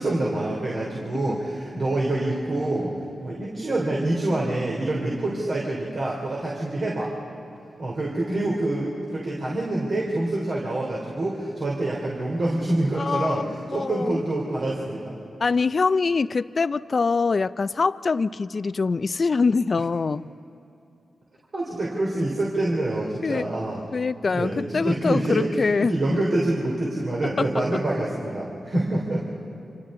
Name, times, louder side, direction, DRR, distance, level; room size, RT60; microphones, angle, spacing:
voice 1, 0.0-2.9 3.2-7.1 7.8-13.4 13.7-15.2 21.5-23.8 24.2-29.2, right 1 dB, 55° right, -3 dB, 3.4 m, -26 dB
voice 2, 13.0-14.2 15.4-20.2 23.2-23.5 23.9-26.2 27.4-27.5, left 4 dB, 50° left, 15 dB, 0.4 m, -24 dB
29.0 x 25.5 x 3.8 m, 2.7 s
cardioid pair, 70°, 0 cm